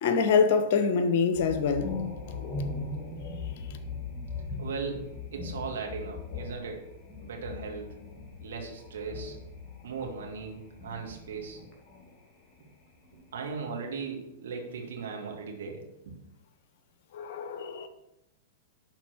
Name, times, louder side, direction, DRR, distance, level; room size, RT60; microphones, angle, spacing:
voice 1, 0.0-1.9 17.1-17.9, left 5 dB, 50° left, 1.0 m, -25 dB
sound 1, 1.3-12.2 12.5-13.7, left 4 dB, 20° left, 2.5 m, -39 dB
voice 2, 4.6-6.9 7.2-7.9 8.4-9.4 9.8-11.6 13.3-16.1, right 5 dB, 60° right, 2.3 m, -38 dB
11.5 x 4.4 x 6.2 m
figure-of-eight pair, 100°, 0 cm